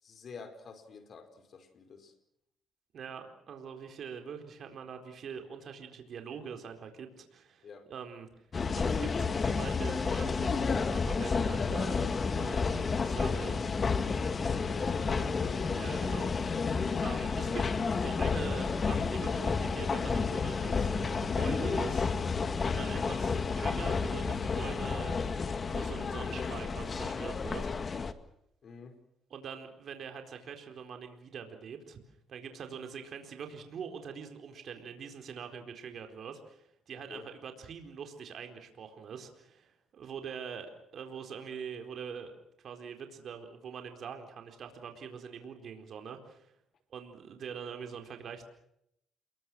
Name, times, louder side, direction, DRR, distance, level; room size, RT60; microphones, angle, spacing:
voice 1, 0.0-2.1 7.6-7.9 14.8-15.6 28.6-29.0 36.9-37.3, left 5 dB, 55° left, 9 dB, 5.1 m, -47 dB
voice 2, 2.9-8.3 8.7-13.6 15.0-15.3 15.8-16.3 17.0-22.1 22.7-25.2 25.7-27.7 29.3-32.0 32.3-42.4 42.6-46.5 46.9-48.4, right 6 dB, 60° right, 5 dB, 4.3 m, -44 dB
sound 1, 8.5-28.1, left 5 dB, 40° left, 1.9 m, -31 dB
29.5 x 22.5 x 6.3 m, 0.76 s
cardioid pair, 90°, 0 cm